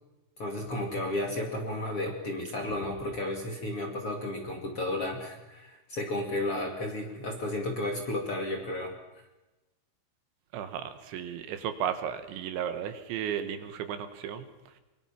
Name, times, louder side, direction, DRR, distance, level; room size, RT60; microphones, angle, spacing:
voice 1, 0.4-8.9, left 1 dB, 40° left, 2 dB, 2.5 m, -33 dB
voice 2, 10.5-14.5, right 9 dB, 75° right, 9 dB, 3.6 m, -34 dB
24.0 x 24.0 x 5.9 m, 1.0 s
omnidirectional pair, 5.6 m